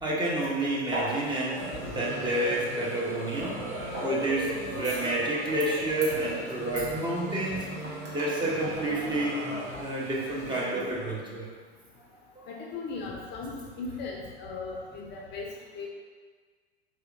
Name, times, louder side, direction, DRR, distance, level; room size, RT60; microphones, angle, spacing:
voice 1, 0.0-3.7 4.0-7.7 8.1-9.4 9.8-11.5 12.3-12.5, right 1 dB, 15° right, -4 dB, 0.7 m, -29 dB
sound 1, 0.9-10.7, right 1 dB, 80° right, 0.9 m, -41 dB
sound 2, 1.6-11.1, right 1 dB, 45° right, 0.9 m, -38 dB
voice 2, 12.5-15.5 15.7-15.9, left 4 dB, 30° left, -2 dB, 0.6 m, -38 dB
4.2 x 2.7 x 2.6 m, 1.5 s
figure-of-eight pair, 85°, 33 cm